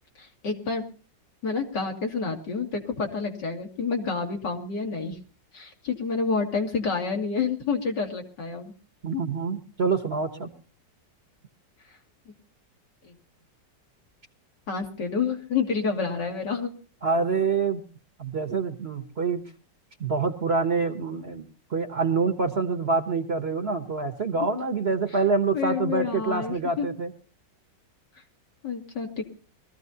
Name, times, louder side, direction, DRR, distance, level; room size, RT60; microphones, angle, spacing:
voice 1, 0.2-0.8 1.4-5.2 5.5-8.7 13.0-13.1 14.7-16.7 25.5-26.9 28.2-28.3 28.6-29.2, left 5 dB, 70° left, 2 dB, 2.8 m, -29 dB
voice 2, 9.0-10.5 17.0-17.8 18.2-19.4 20.0-27.1, right 4 dB, 40° right, 7 dB, 1.2 m, -26 dB
23.0 x 14.5 x 2.8 m, 0.36 s
omnidirectional pair, 1.9 m